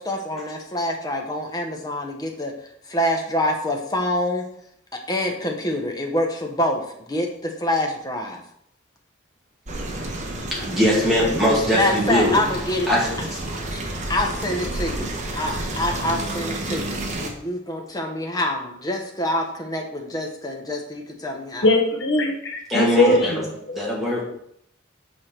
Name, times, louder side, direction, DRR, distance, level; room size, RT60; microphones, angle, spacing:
voice 1, 0.0-2.5 2.9-4.5 4.9-8.4 11.7-12.9 13.7-13.8 14.1-21.7, left 1 dB, 20° left, 2 dB, 0.9 m, -26 dB
sound 1, 9.7-17.3, right 1 dB, 35° right, 1.0 m, -30 dB
voice 2, 10.5-12.3 12.9-13.0 22.7-23.4 23.7-24.3, equal, ahead, -6 dB, 2.3 m, -20 dB
voice 3, 21.6-23.4 23.7-23.8, left 2 dB, 60° left, 2 dB, 1.2 m, -20 dB
7.0 x 4.7 x 4.4 m, 0.72 s
head